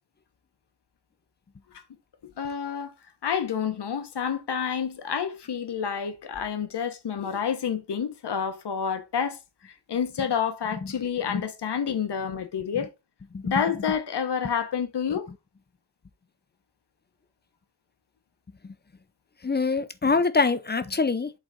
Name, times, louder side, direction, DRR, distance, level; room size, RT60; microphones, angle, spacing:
voice 1, 2.4-2.9 3.2-9.4 9.9-12.9 13.4-15.3, left 7 dB, 75° left, 1.2 m, -29 dB
voice 2, 19.4-21.3, left 4 dB, 25° left, 0.6 m, -25 dB
7.9 x 4.0 x 3.8 m
wide cardioid pair, 140°, 40 cm